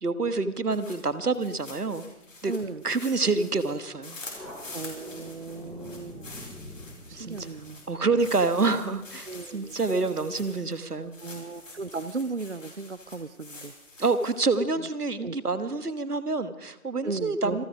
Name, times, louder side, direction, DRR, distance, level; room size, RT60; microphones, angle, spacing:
voice 1, 0.0-2.0 2.4-2.5 2.8-4.2 7.1-7.5 7.9-9.3 9.5-11.1 14.0-17.6, right 3 dB, 85° right, 12 dB, 1.6 m, -27 dB
sound 1, 0.6-14.6, left 2 dB, 55° left, 5.1 m, -47 dB
voice 2, 2.4-2.8 4.7-6.3 7.1-7.8 9.3-9.8 11.2-13.7 14.8-14.9 15.2-15.4 17.0-17.6, right 3 dB, 50° right, 14 dB, 0.6 m, -36 dB
Thunder, 4.2-11.3, left 1 dB, 5° left, 2.6 m, -47 dB
26.5 x 9.5 x 5.1 m, 0.84 s
figure-of-eight pair, 170°, 45 cm